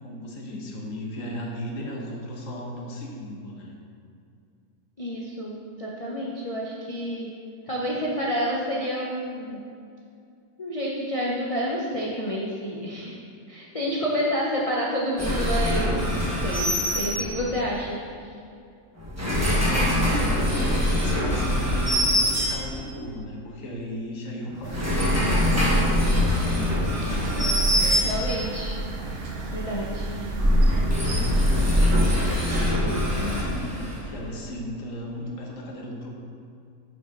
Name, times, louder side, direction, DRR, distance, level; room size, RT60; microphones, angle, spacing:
voice 1, 0.0-3.7 19.6-26.9 32.1-36.1, left 1 dB, 60° left, -1 dB, 1.4 m, -35 dB
voice 2, 5.0-7.3 7.7-9.6 10.6-13.2 13.5-15.9 16.2-18.3 26.8-27.5 27.8-29.3 29.5-30.1, equal, 40° left, -4 dB, 0.5 m, -29 dB
sound 1, 15.2-17.7 19.0-23.0 24.5-28.6 30.1-34.2, equal, 10° right, 1.1 m, -23 dB
sound 2, 24.6-31.8, right 2 dB, 60° right, 1.1 m, -31 dB
6.3 x 5.0 x 5.2 m, 2.4 s
omnidirectional pair, 1.7 m